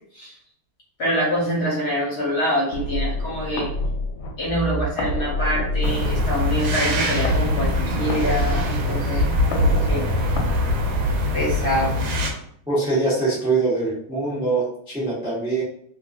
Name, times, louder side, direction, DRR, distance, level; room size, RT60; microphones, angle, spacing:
voice 1, 1.0-3.7 4.4-10.1 11.3-11.9, equal, 55° left, -5 dB, 1.5 m, -25 dB
sound 1, 2.7-11.7, equal, 90° left, 1.4 m, -27 dB
sound 2, 5.8-12.3, left 2 dB, 80° right, 1.4 m, -23 dB
voice 2, 12.7-15.6, right 3 dB, 5° right, -7 dB, 0.3 m, -23 dB
3.4 x 2.6 x 2.5 m, 0.66 s
omnidirectional pair, 2.2 m